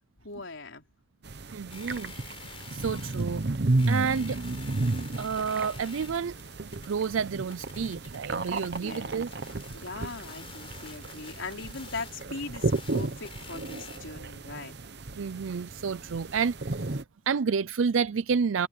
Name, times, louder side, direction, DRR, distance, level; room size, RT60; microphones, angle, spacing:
voice 1, 0.2-0.9 8.8-9.2 9.7-14.7, left 3 dB, 70° left, 4.2 m, -40 dB
sound 1, 1.2-17.0, right 2 dB, 50° right, 0.9 m, -33 dB
voice 2, 1.5-2.1 2.4-3.4 3.9-4.4 5.2-9.3 15.2-18.7, right 6 dB, 75° right, 0.5 m, -30 dB
sound 2, 1.7-14.0, left 6 dB, 25° left, 4.6 m, -49 dB
head